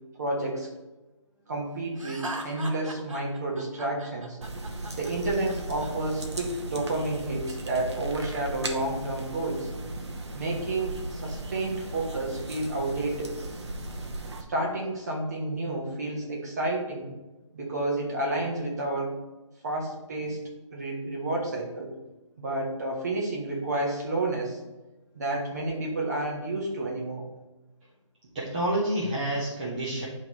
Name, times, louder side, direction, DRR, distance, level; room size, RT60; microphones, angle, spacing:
voice 1, 0.2-0.7 1.5-4.4 5.0-9.7 10.3-13.4 14.5-17.1 17.5-19.2 19.6-20.4 20.7-22.0 22.4-24.6 25.1-27.2, right 2 dB, 35° right, -1 dB, 1.3 m, -30 dB
Laughter, 2.0-5.9, right 2 dB, 85° right, 1.4 m, -39 dB
sound 1, 4.4-14.4, right 2 dB, 60° right, 0.9 m, -37 dB
voice 2, 28.3-30.0, right 1 dB, 15° right, -8 dB, 0.7 m, -28 dB
9.6 x 3.2 x 4.1 m, 1.1 s
hypercardioid pair, 170°, 16 cm